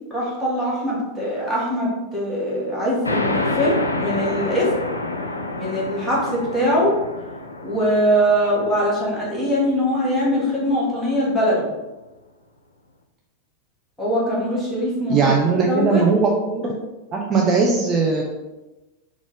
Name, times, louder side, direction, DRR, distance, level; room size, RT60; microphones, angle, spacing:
voice 1, 0.1-4.7 5.6-6.9 7.6-11.7 14.0-15.3 15.6-16.0, equal, 5° left, -7 dB, 1.5 m, -22 dB
sound 1, 3.0-10.2, left 2 dB, 80° left, 0.3 m, -28 dB
voice 2, 15.1-16.7 17.1-18.2, right 4 dB, 25° right, -1 dB, 0.4 m, -19 dB
4.0 x 2.4 x 3.5 m, 1.1 s
figure-of-eight pair, 90°, 0 cm